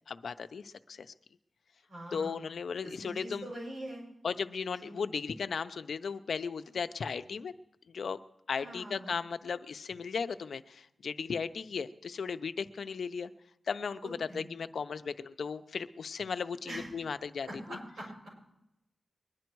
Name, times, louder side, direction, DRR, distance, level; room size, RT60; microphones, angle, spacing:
voice 1, 0.1-1.1 2.1-3.5 4.2-7.5 7.9-8.2 8.5-13.3 13.7-17.8, left 5 dB, 80° left, 11 dB, 0.5 m, -36 dB
voice 2, 1.9-2.4 2.8-4.0 4.8-5.0 8.6-9.2 14.3-14.5 16.6-16.9 17.4-18.3, right 1 dB, 90° right, -3 dB, 6.7 m, -43 dB
22.0 x 10.5 x 4.6 m, 0.88 s
wide cardioid pair, 105°, 0 cm